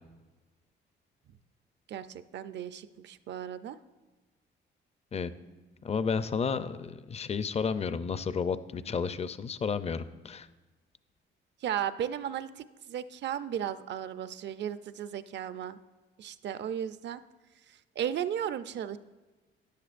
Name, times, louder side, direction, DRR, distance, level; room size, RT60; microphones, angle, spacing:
voice 1, 1.9-3.8 11.6-15.8 16.2-17.2 17.7-19.0, right 9 dB, 65° right, 13 dB, 0.5 m, -35 dB
voice 2, 5.8-10.5, left 6 dB, 30° left, 13 dB, 0.5 m, -32 dB
13.0 x 10.5 x 2.5 m, 1.3 s
cardioid pair, 90°, 20 cm